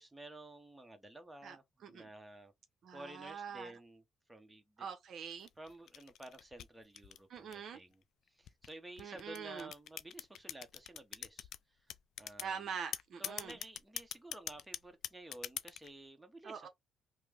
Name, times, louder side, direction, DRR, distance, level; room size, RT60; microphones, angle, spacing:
voice 1, 0.0-2.5 2.9-4.0 4.3-4.9 5.6-8.0 8.3-11.8 12.2-12.7 13.2-16.7, right 2 dB, 10° right, 0.9 m, -52 dB
voice 2, 2.8-3.7 4.8-5.5 7.3-7.8 9.0-9.7 12.4-13.6 16.4-16.7, right 7 dB, 65° right, 0.6 m, -44 dB
sound 1, 5.3-7.8 8.5-11.6 11.9-12.5 12.9-15.9, left 10 dB, 75° left, 0.3 m, -43 dB
3.0 x 2.0 x 3.4 m
cardioid pair, 90°, 0 cm